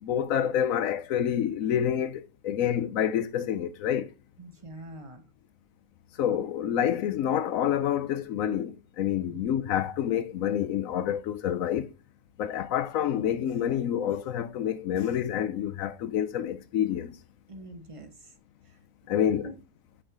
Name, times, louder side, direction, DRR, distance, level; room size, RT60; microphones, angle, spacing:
voice 1, 0.0-4.1 6.2-11.9 12.4-17.2 19.1-19.5, left 9 dB, 85° left, 1.1 m, -28 dB
voice 2, 4.4-5.2 9.3-9.4 17.5-18.3 18.7-18.8 19.4-19.6, right 1 dB, 25° right, 0.9 m, -44 dB
6.2 x 4.9 x 3.6 m
omnidirectional pair, 1.4 m